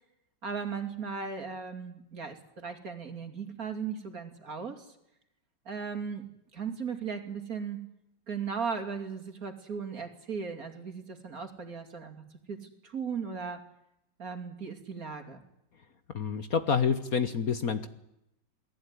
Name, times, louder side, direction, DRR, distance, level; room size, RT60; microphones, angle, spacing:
voice 1, 0.4-4.9 5.6-6.3 6.5-7.8 8.3-13.6 14.2-15.4, right 6 dB, 45° right, 6 dB, 3.1 m, -37 dB
voice 2, 16.1-17.9, left 6 dB, 50° left, 11 dB, 1.5 m, -28 dB
28.5 x 19.5 x 9.8 m, 0.84 s
omnidirectional pair, 2.1 m